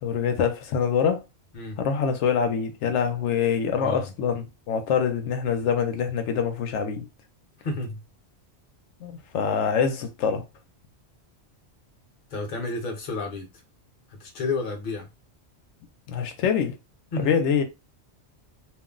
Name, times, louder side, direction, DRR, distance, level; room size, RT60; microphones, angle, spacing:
voice 1, 0.0-1.3 1.8-7.1 9.0-10.5 16.1-16.8 17.2-17.6, left 7 dB, 85° left, 0.9 m, -25 dB
voice 2, 3.7-4.1 7.6-8.0 12.3-13.5 14.1-15.1 17.1-17.3, left 3 dB, 50° left, 0.8 m, -31 dB
2.4 x 2.0 x 3.6 m
omnidirectional pair, 1.2 m